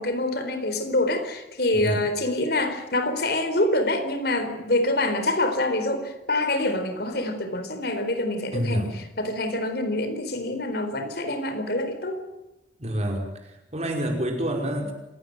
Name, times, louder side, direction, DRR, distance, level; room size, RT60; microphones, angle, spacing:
voice 1, 0.0-8.9 9.2-12.2, left 1 dB, 60° left, 8 dB, 4.2 m, -26 dB
voice 2, 1.7-2.0 8.5-8.9 12.8-14.9, right 1 dB, 40° right, 3 dB, 5.2 m, -28 dB
27.0 x 17.5 x 7.9 m, 0.95 s
head